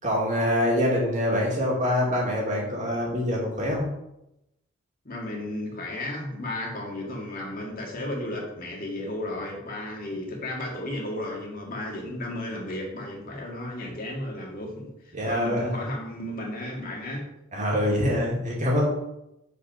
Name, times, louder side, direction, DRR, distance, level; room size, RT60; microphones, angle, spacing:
voice 1, 0.0-3.9 15.1-15.7 17.5-18.9, left 1 dB, 40° right, -3 dB, 2.5 m, -25 dB
voice 2, 5.0-17.3, left 1 dB, 50° left, -1 dB, 2.1 m, -34 dB
7.0 x 5.4 x 6.0 m, 0.87 s
head